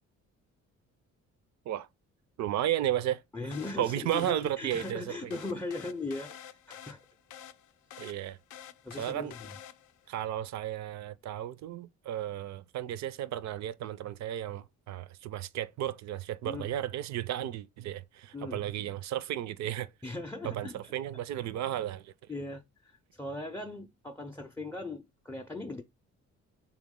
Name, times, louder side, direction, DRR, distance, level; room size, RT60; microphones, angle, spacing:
voice 1, 2.4-3.2 3.8-5.4 8.0-8.4 9.0-9.3 10.1-19.9 20.5-22.1, right 12 dB, 65° right, 0.5 m, -34 dB
voice 2, 3.3-7.0 8.8-9.6 16.4-16.7 18.3-18.6 20.0-20.9 22.3-25.8, left 2 dB, 10° left, 0.4 m, -39 dB
sound 1, 3.5-10.1, left 10 dB, 80° left, 0.4 m, -49 dB
3.5 x 3.0 x 3.6 m
cardioid pair, 90°, 30 cm